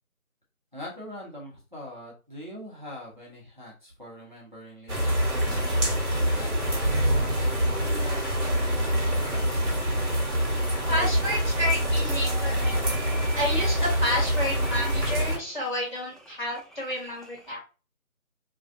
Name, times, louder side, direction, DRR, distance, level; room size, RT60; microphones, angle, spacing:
voice 1, 0.7-9.8, left 1 dB, 35° right, -4 dB, 0.7 m, -44 dB
sound 1, 4.9-15.4, equal, 55° right, 1.0 m, -25 dB
voice 2, 10.9-12.8 13.3-17.6, left 1 dB, 30° left, -7 dB, 1.3 m, -30 dB
sound 2, 11.6-17.5, right 1 dB, ahead, 0.3 m, -46 dB
2.5 x 2.3 x 2.5 m, 0.33 s
figure-of-eight pair, 175°, 43 cm